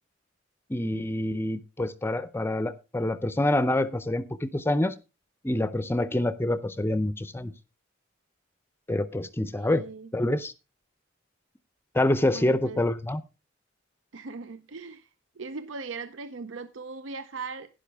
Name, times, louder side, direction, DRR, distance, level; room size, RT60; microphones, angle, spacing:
voice 1, 0.7-4.9 5.4-7.5 8.9-9.8 10.1-10.5 11.9-13.2, left 1 dB, 10° left, 0.5 m, -26 dB
voice 2, 9.6-10.1 12.2-12.8 14.1-15.1 15.4-17.7, right 4 dB, 75° right, 0.6 m, -39 dB
11.5 x 10.5 x 3.5 m
head